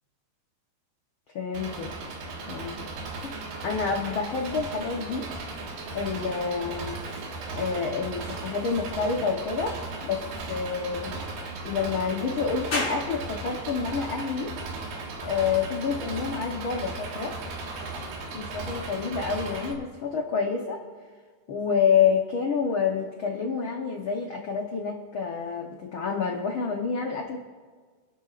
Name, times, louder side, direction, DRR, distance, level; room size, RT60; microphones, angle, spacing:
voice 1, 1.3-1.9 2.5-2.9 3.2-3.3 3.6-5.3 5.9-7.0 7.5-11.2 11.6-14.5 15.2-17.4 18.3-20.8 21.5-27.4, left 6 dB, 85° left, 1 dB, 1.1 m, -28 dB
Engine, 1.5-19.7, right 3 dB, 90° right, 3.3 m, -36 dB
sound 1, 12.7-25.8, left 2 dB, 45° left, 5.6 m, -43 dB
27.0 x 11.5 x 2.5 m, 1.5 s
omnidirectional pair, 3.8 m